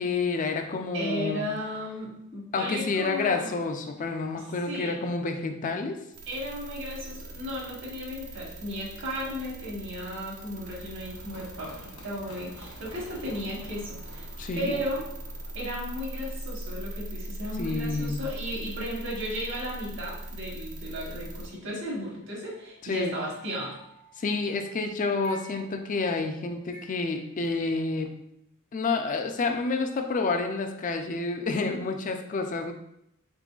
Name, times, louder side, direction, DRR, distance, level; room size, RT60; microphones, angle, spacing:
voice 1, 0.0-1.5 2.5-6.0 14.4-14.8 17.6-18.2 22.8-23.1 24.2-28.1 28.7-32.7, left 3 dB, 35° left, 6 dB, 0.4 m, -29 dB
voice 2, 0.9-3.6 4.3-5.0 6.3-14.3 14.5-15.1 15.5-23.8, equal, 60° right, -3 dB, 1.2 m, -35 dB
sound 1, 6.1-21.5, right 1 dB, 80° right, 0.6 m, -40 dB
Run, 9.9-15.5, left 1 dB, 80° left, 0.7 m, -50 dB
sound 2, 22.5-24.7 25.2-28.0, right 2 dB, 40° right, 0.7 m, -51 dB
3.8 x 3.7 x 2.3 m, 0.79 s
head